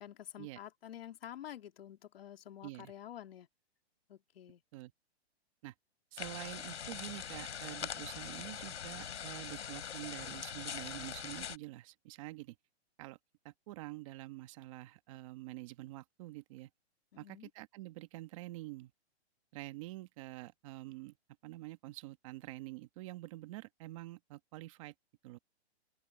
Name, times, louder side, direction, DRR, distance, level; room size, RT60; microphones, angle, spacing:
voice 1, 0.0-3.5 4.1-4.6 17.1-17.5, left 11 dB, 60° left, 3.0 m, -49 dB
voice 2, 6.1-12.6 13.0-13.2 13.4-16.7 17.2-18.9 19.5-21.1 21.4-24.9 25.2-25.4, right 18 dB, 30° right, 1.4 m, -47 dB
sound 1, 6.2-11.6, left 8 dB, 90° left, 3.8 m, -42 dB
open air
hypercardioid pair, 165°, 33 cm